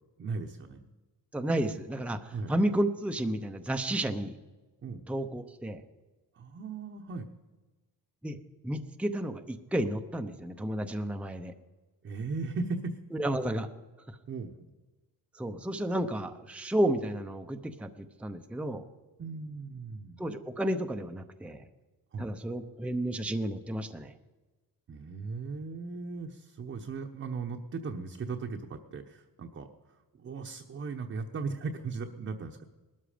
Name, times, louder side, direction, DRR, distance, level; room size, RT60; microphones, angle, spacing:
voice 1, 0.2-0.8 2.3-2.5 4.8-5.0 6.4-7.3 12.0-12.9 14.3-14.6 19.2-20.2 22.1-22.3 24.9-32.6, right 4 dB, 35° right, 2 dB, 1.0 m, -37 dB
voice 2, 1.3-4.3 5.1-5.8 8.2-8.4 8.6-11.5 13.1-13.7 15.3-18.8 20.2-21.6 22.2-24.1, right 1 dB, 5° right, 7 dB, 0.7 m, -32 dB
19.0 x 13.0 x 5.1 m, 1.2 s
cardioid pair, 130°, 37 cm